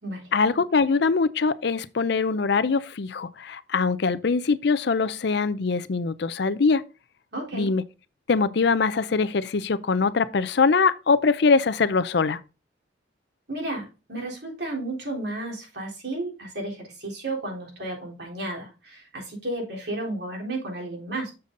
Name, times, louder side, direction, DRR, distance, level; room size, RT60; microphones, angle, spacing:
voice 1, 0.3-6.8 7.5-7.8 8.3-12.4, left 4 dB, 60° left, 0.5 m, -22 dB
voice 2, 7.3-7.7 13.5-21.3, right 2 dB, 60° right, 3.7 m, -33 dB
6.9 x 6.8 x 3.8 m
head